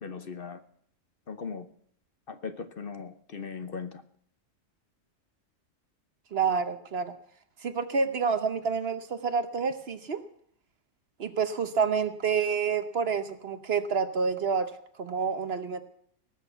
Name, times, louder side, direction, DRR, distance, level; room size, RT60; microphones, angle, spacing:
voice 1, 0.0-0.6 1.3-1.7 2.3-4.0, left 5 dB, 50° left, 10 dB, 1.0 m, -38 dB
voice 2, 6.3-7.1 7.6-10.2 11.2-14.7 15.0-15.8, right 5 dB, 55° right, 10 dB, 1.1 m, -28 dB
19.0 x 6.5 x 8.0 m, 0.65 s
omnidirectional pair, 1.3 m